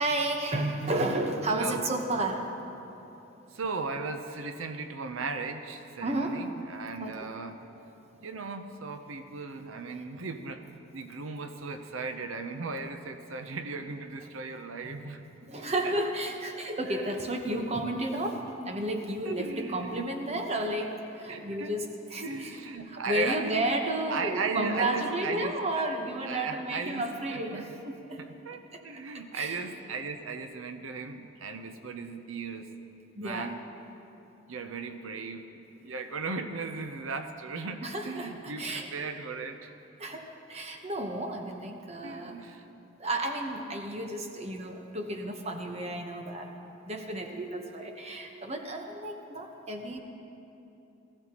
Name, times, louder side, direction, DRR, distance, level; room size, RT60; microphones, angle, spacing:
voice 1, 0.0-2.4 6.0-6.4 7.0-7.1 14.8-15.1 15.4-18.4 18.6-20.9 21.2-21.8 22.1-22.6 22.9-28.2 29.3-29.6 33.2-33.5 37.8-38.9 40.0-40.2 40.5-42.3 43.0-46.5 46.9-50.0, right 1 dB, 30° right, 3 dB, 1.0 m, -32 dB
voice 2, 1.5-1.9 3.5-7.7 8.2-15.2 15.8-15.9 16.5-17.1 19.2-20.2 21.3-21.8 22.2-23.5 24.1-25.9 26.2-27.8 28.2-32.7 33.2-33.6 34.5-39.7 42.0-42.6, right 4 dB, 90° right, 7 dB, 0.7 m, -37 dB
19.0 x 15.0 x 3.0 m, 3.0 s
head